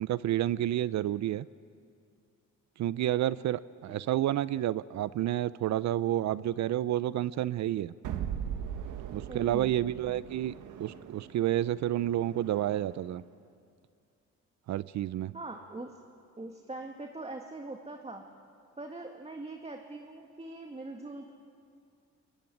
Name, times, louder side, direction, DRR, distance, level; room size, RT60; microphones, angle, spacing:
voice 1, 0.0-1.5 2.8-7.9 9.1-10.5 10.8-13.2 14.7-15.3, right 12 dB, 65° right, 17 dB, 0.6 m, -30 dB
sound 1, 8.0-13.1, right 9 dB, 85° right, 1.6 m, -40 dB
voice 2, 9.3-9.8 15.3-16.0 16.4-18.3 18.8-21.3, right 2 dB, 20° right, 3 dB, 2.0 m, -42 dB
22.5 x 22.5 x 9.9 m, 2.4 s
cardioid pair, 90°, 30 cm